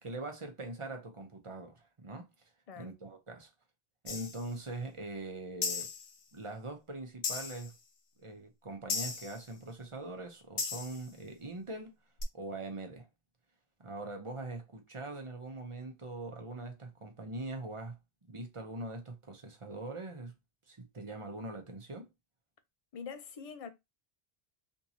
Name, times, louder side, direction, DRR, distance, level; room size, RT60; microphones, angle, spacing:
voice 1, 0.0-2.3 2.8-3.5 4.0-5.9 6.3-7.7 8.2-12.0 12.3-13.1 13.8-18.0 18.3-20.3 20.7-22.1, right 2 dB, 35° right, 0.8 m, -42 dB
sound 1, 4.1-4.5 5.6-6.1 7.2-7.7 8.9-9.4 10.6-11.1 12.2-12.3, left 5 dB, 65° left, 1.0 m, -36 dB
voice 2, 22.9-23.7, left 6 dB, 45° left, 0.5 m, -44 dB
3.5 x 2.9 x 2.7 m
omnidirectional pair, 1.0 m